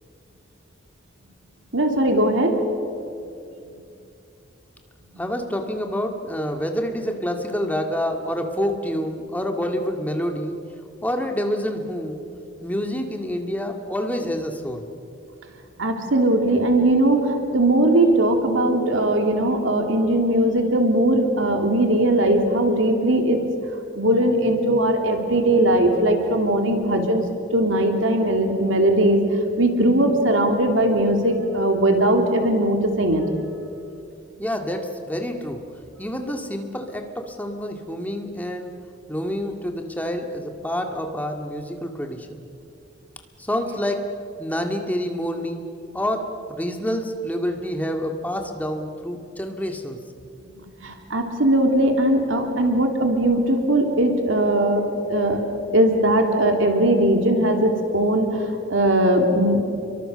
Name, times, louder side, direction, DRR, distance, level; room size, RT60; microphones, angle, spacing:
voice 1, 1.7-2.5 15.8-23.4 23.9-27.2 27.5-29.2 29.6-33.2 50.8-55.4 55.7-58.4 58.7-59.6, right 1 dB, 90° right, 3 dB, 3.0 m, -19 dB
voice 2, 5.2-10.6 11.0-12.2 12.6-14.9 34.4-35.6 36.0-38.8 39.1-42.4 43.4-50.0, equal, 10° left, 3 dB, 2.1 m, -27 dB
29.5 x 23.5 x 6.9 m, 2.6 s
head